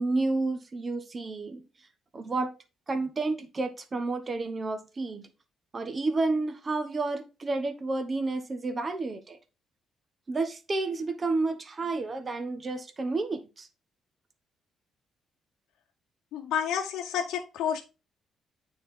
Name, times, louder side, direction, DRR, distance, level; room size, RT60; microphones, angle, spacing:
voice 1, 0.0-1.6 2.1-2.5 2.9-5.3 5.7-9.4 10.3-13.7, right 3 dB, 35° right, 8 dB, 1.1 m, -30 dB
voice 2, 16.3-17.8, left 8 dB, 85° left, 1 dB, 0.8 m, -30 dB
9.1 x 4.4 x 3.6 m, 0.29 s
cardioid pair, 90°, 0 cm